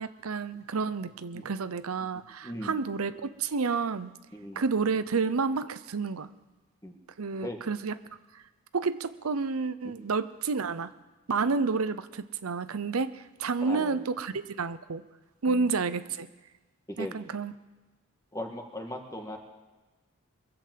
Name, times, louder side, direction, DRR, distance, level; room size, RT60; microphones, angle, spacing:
voice 1, 0.0-4.1 4.5-6.3 7.2-7.9 8.3-8.4 8.7-10.9 11.3-15.0 15.4-16.3 17.0-17.5, right 4 dB, 90° right, 13 dB, 0.7 m, -30 dB
voice 2, 2.4-2.8 4.3-4.6 6.8-7.0 7.4-7.6 11.4-11.5 13.6-14.0 15.5-15.7 16.9-17.1 18.3-19.4, equal, 15° left, 3 dB, 1.7 m, -38 dB
22.0 x 8.0 x 7.6 m, 1.2 s
head